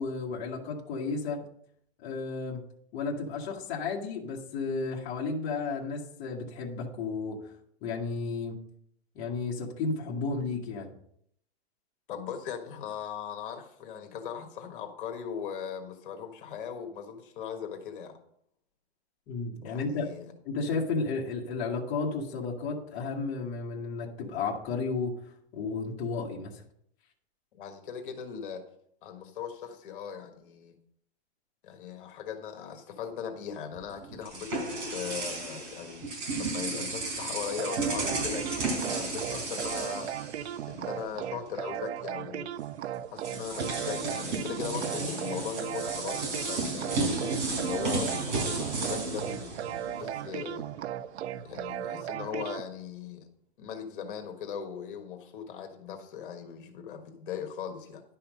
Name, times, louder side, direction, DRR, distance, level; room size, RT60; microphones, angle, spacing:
voice 1, 0.0-1.4 2.0-2.6 2.9-7.5 7.8-8.6 9.1-10.9 19.3-20.1 20.4-25.1 25.5-26.6, left 4 dB, 25° left, -3 dB, 1.4 m, -33 dB
voice 2, 12.1-18.2 19.6-20.3 27.5-28.6 29.0-30.7 31.6-34.6 34.9-36.0 36.3-40.1 40.7-42.5 43.1-47.0 47.6-50.6 51.4-53.3 53.6-58.0, left 8 dB, 50° left, 5 dB, 1.5 m, -39 dB
sound 1, 33.7-41.0 41.3-41.5 42.6-42.7 43.2-50.3, right 2 dB, 45° right, 4.6 m, -33 dB
sound 2, 37.5-52.6, right 11 dB, 85° right, 0.6 m, -37 dB
11.0 x 5.7 x 5.2 m, 0.69 s
hypercardioid pair, 160°, 32 cm